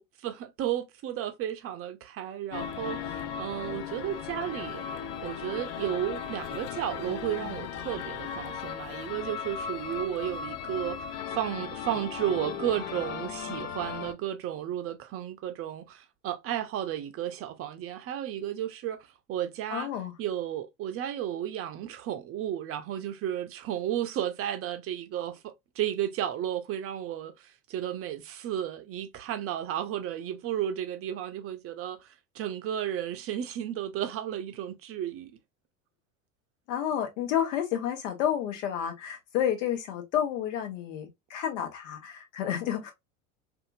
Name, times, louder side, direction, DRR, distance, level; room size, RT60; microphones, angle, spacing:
voice 1, 0.0-4.8 5.2-19.0 19.3-19.9 20.2-35.4, right 11 dB, 35° right, 0.6 m, -33 dB
sound 1, 2.5-14.1, left 7 dB, 40° left, 0.5 m, -37 dB
voice 2, 19.7-20.1 36.7-42.9, left 10 dB, 65° left, 1.1 m, -30 dB
2.7 x 2.5 x 2.5 m
hypercardioid pair, 75°, 41 cm